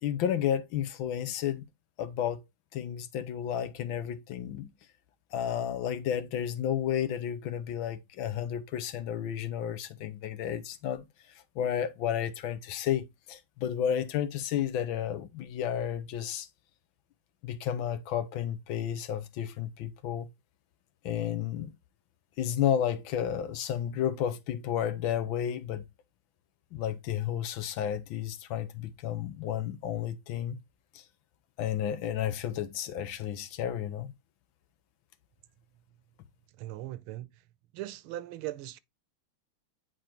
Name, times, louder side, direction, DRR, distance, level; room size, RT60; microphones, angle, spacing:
voice 1, 0.0-1.6 2.0-2.4 2.7-4.7 5.3-11.0 11.5-16.5 17.4-20.3 21.0-21.7 22.4-25.8 26.7-30.6 30.9-31.0 31.6-34.1, left 9 dB, 75° left, 1.5 m, -32 dB
voice 2, 36.6-37.4 37.7-38.8, right 15 dB, 85° right, 1.5 m, -39 dB
9.3 x 4.4 x 2.9 m
omnidirectional pair, 2.3 m